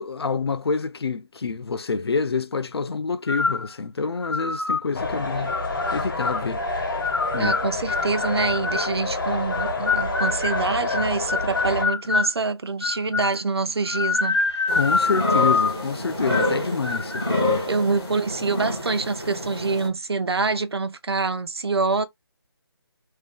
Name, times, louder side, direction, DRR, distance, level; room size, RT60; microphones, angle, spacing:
voice 1, 0.0-5.6 5.9-6.6 7.3-7.6 14.7-17.7, left 4 dB, 70° left, 0.4 m, -27 dB
sound 1, 3.3-3.7 4.2-4.8 5.5-6.5 7.0-8.9 9.5-12.3 12.8-13.4 13.9-15.8 16.3-16.6 16.8-17.3, left 4 dB, 90° left, 0.9 m, -25 dB
sound 2, 4.9-11.9, left 2 dB, 50° left, 1.0 m, -28 dB
voice 2, 7.4-14.4 17.7-22.0, right 4 dB, 75° right, 0.6 m, -25 dB
sound 3, 14.7-19.9, left 1 dB, 5° left, 0.6 m, -28 dB
2.6 x 2.3 x 3.4 m
figure-of-eight pair, 180°, 14 cm